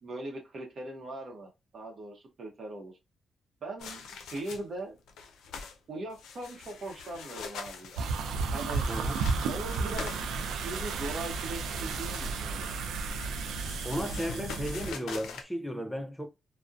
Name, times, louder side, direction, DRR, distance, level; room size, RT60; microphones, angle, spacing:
voice 1, 0.0-2.9 3.6-4.1 4.3-5.0 5.9-8.0 8.5-8.9 9.5-12.8, right 2 dB, 60° right, 0.7 m, -40 dB
sound 1, 3.8-4.8 5.1-5.8 6.1-11.3 12.6-15.4, left 5 dB, 90° left, 0.4 m, -44 dB
sound 2, 8.0-14.9, right 4 dB, 90° right, 0.3 m, -33 dB
voice 2, 13.8-16.3, equal, 5° left, 0.4 m, -34 dB
2.5 x 2.0 x 2.4 m
cardioid pair, 65°, 0 cm